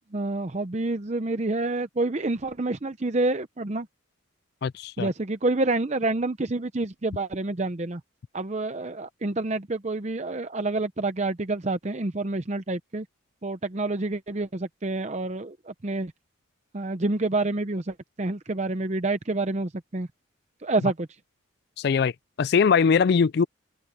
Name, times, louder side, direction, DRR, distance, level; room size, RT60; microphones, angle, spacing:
voice 1, 0.1-3.9 5.0-8.0 8.3-13.1 13.4-16.1 16.7-20.1 20.6-21.1, right 2 dB, 35° right, 0.7 m, -28 dB
voice 2, 4.6-5.1 21.8-22.1 22.4-23.4, left 6 dB, 50° left, 0.3 m, -21 dB
open air
head